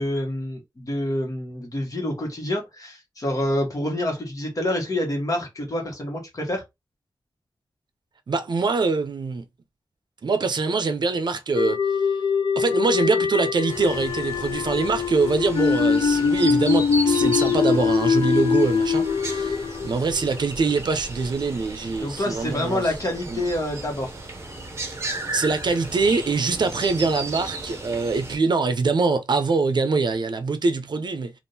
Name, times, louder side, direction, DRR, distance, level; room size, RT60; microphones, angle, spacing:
voice 1, 0.0-6.6 22.0-24.1, left 1 dB, 45° left, 1.3 m, -27 dB
voice 2, 8.3-9.4 10.2-11.8 12.6-22.8 23.3-23.4 25.3-31.3, right 4 dB, 65° right, 0.5 m, -24 dB
sound 1, 11.5-20.8, left 6 dB, 70° left, 0.5 m, -23 dB
sound 2, 13.7-28.4, right 2 dB, 35° right, 0.8 m, -35 dB
3.5 x 2.5 x 2.6 m
wide cardioid pair, 110°, 8 cm